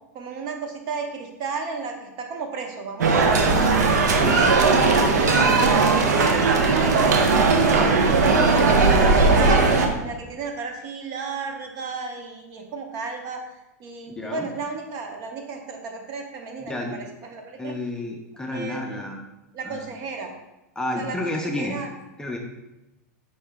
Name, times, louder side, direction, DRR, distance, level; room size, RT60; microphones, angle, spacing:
voice 1, 0.1-3.7 4.2-4.5 4.8-9.5 10.0-17.7 18.5-19.1 19.5-20.3 21.0-21.9, right 4 dB, 45° right, 3 dB, 0.7 m, -34 dB
sound 1, 3.0-9.9, right 4 dB, 85° right, 0.6 m, -18 dB
voice 2, 4.2-4.5 14.2-14.5 16.6-17.0 17.6-19.2 19.6-19.8 20.8-21.8 22.2-22.4, left 1 dB, 10° left, 1 dB, 0.4 m, -30 dB
4.4 x 2.8 x 3.4 m, 0.97 s
hypercardioid pair, 120°, 9 cm